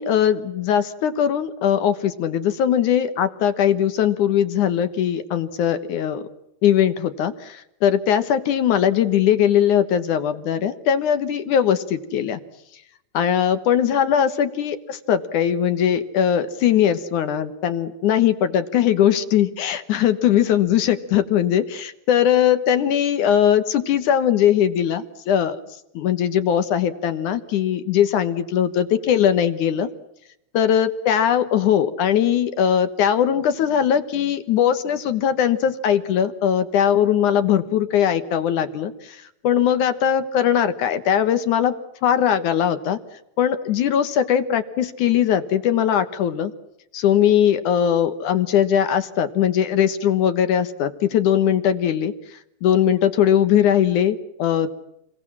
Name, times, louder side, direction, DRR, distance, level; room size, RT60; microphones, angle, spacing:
voice 1, 0.0-6.2 6.6-12.4 13.1-25.6 25.9-29.9 30.5-41.7 42.0-43.0 43.4-46.5 46.9-52.1 52.6-54.8, left 9 dB, 65° left, 10 dB, 2.5 m, -20 dB
28.5 x 22.0 x 7.5 m, 0.82 s
omnidirectional pair, 4.2 m